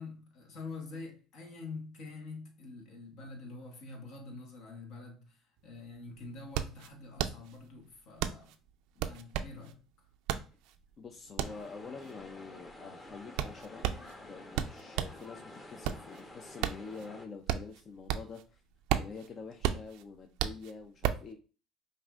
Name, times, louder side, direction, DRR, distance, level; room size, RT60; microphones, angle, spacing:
voice 1, 0.0-8.6 8.9-9.8, left 3 dB, 70° left, 1.3 m, -46 dB
sound 1, 5.6-5.7 6.0-15.3 15.6-18.5 18.7-21.3, right 10 dB, 75° right, 0.4 m, -34 dB
voice 2, 11.0-13.8 14.2-18.6 19.0-21.4, left 4 dB, 40° left, 0.5 m, -46 dB
sound 2, 11.4-17.3, left 1 dB, 25° left, 0.9 m, -50 dB
5.3 x 2.6 x 2.4 m
supercardioid pair, 85°, 0 cm